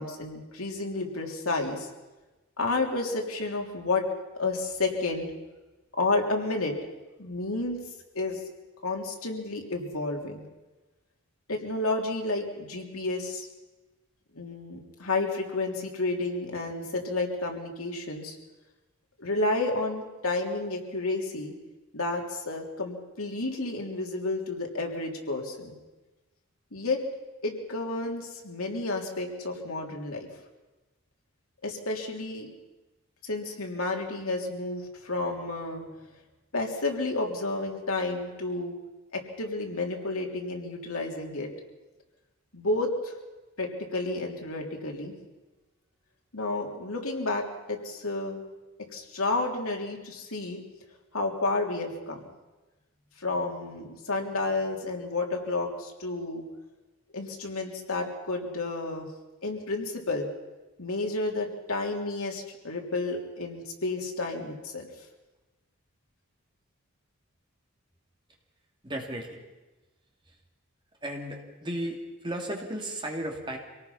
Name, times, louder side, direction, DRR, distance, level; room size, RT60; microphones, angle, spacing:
voice 1, 0.0-1.9 2.6-4.0 4.3-5.3 6.0-6.7 7.2-7.8 8.1-8.4 8.8-10.4 11.5-13.5 14.3-18.3 19.2-21.5 21.9-25.7 26.7-27.0 27.4-30.3 31.6-32.5 33.2-35.8 36.5-38.7 39.1-41.5 42.5-43.1 43.6-45.1 46.3-48.4 48.9-50.6 51.1-52.2 53.2-56.4 57.1-59.1 59.4-60.3 60.8-64.9, left 2 dB, 85° left, 1 dB, 3.3 m, -31 dB
voice 2, 68.8-69.4 70.3-70.4 71.0-73.6, right 1 dB, 20° right, 1 dB, 2.8 m, -35 dB
25.5 x 18.0 x 5.7 m, 1.1 s
head